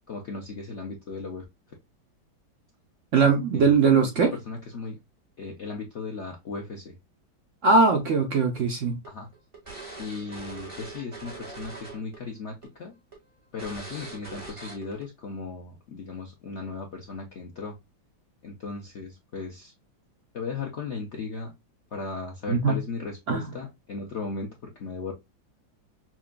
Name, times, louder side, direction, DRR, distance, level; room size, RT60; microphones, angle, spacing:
voice 1, 0.1-1.4 3.2-3.3 3.5-5.0 5.4-6.9 9.0-9.3 10.0-12.9 13.5-17.8 18.4-19.7 20.3-21.5 21.9-25.1, left 4 dB, 80° left, 0.6 m, -36 dB
voice 2, 3.1-4.3 7.6-9.0 22.5-22.8 23.3-23.5, right 4 dB, 70° right, 0.7 m, -21 dB
sound 1, 8.6-12.2 12.4-12.7 13.1-13.2 13.6-15.0, right 3 dB, 20° right, 1.3 m, -41 dB
5.9 x 2.2 x 2.3 m
omnidirectional pair, 2.1 m